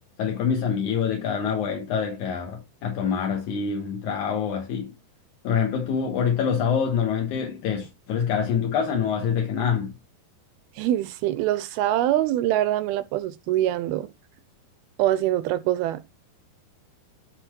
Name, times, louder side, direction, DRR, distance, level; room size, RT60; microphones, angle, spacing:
voice 1, 0.2-4.9 5.4-9.9, left 7 dB, 65° left, 2.2 m, -25 dB
voice 2, 10.8-14.1 15.0-16.0, right 13 dB, 80° right, 2.3 m, -24 dB
12.0 x 4.2 x 4.4 m
omnidirectional pair, 4.8 m